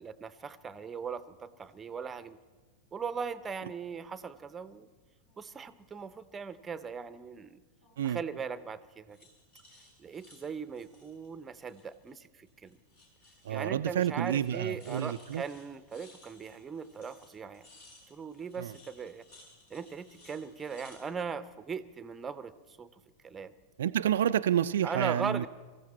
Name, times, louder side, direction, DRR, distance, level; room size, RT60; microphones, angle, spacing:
voice 1, 0.0-2.4 2.9-4.9 5.4-7.6 8.0-9.2 10.0-12.8 13.5-17.7 18.1-19.2 19.7-23.5 24.8-25.5, right 5 dB, 15° right, 0.7 m, -39 dB
sound 1, 1.4-1.6 3.1-3.4 3.8-4.7 5.2-6.1 7.8-8.3 9.1-12.2 12.5-13.6 13.9-14.1 14.3-21.1, left 2 dB, 60° left, 4.9 m, -60 dB
voice 2, 13.4-15.4 18.6-18.7 23.8-25.5, right 10 dB, 60° right, 0.4 m, -29 dB
23.0 x 14.5 x 4.2 m
figure-of-eight pair, 90°, 0 cm